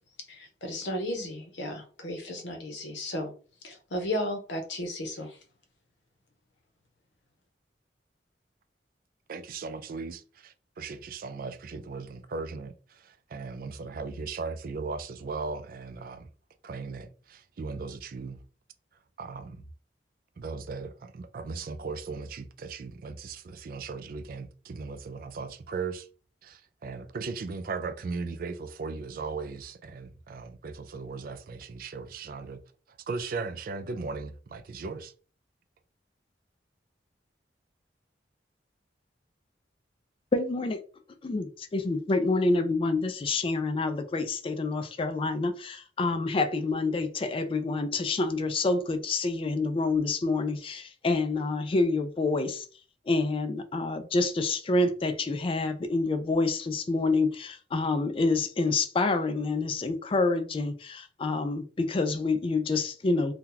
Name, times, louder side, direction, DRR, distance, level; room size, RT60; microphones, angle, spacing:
voice 1, 0.3-3.3 3.6-5.4, left 1 dB, 90° left, 0.8 m, -34 dB
voice 2, 9.3-16.3 16.6-18.4 19.2-19.6 20.4-26.1 26.4-32.6 33.1-35.1, right 4 dB, 50° right, 0.4 m, -37 dB
voice 3, 40.3-40.8 41.2-52.7 53.1-63.3, left 3 dB, 30° left, 0.3 m, -27 dB
2.8 x 2.2 x 3.8 m
head